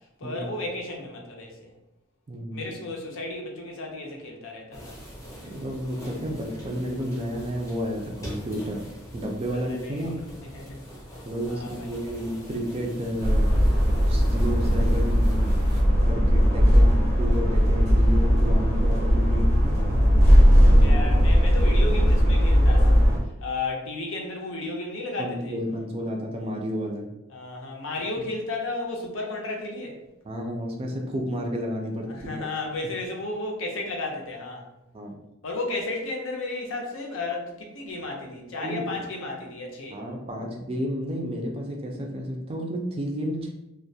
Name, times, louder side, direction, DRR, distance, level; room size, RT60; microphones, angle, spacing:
voice 1, 0.2-1.7 2.5-5.0 9.5-10.9 11.5-11.9 16.6-17.0 19.6-25.6 27.3-30.0 32.0-34.7 35.4-40.0, left 2 dB, 70° left, 0 dB, 0.5 m, -34 dB
voice 2, 2.3-2.8 5.4-8.8 9.1-10.2 11.2-13.5 14.1-15.5 16.1-19.8 20.8-21.0 25.2-27.1 30.3-32.5 34.9-35.2 38.5-38.8 39.9-43.5, equal, 30° right, 1 dB, 0.3 m, -31 dB
sound 1, 4.7-15.8, equal, 15° left, 0.7 m, -42 dB
sound 2, 13.2-23.2, equal, 90° right, 0.6 m, -18 dB
2.3 x 2.1 x 2.6 m, 0.92 s
head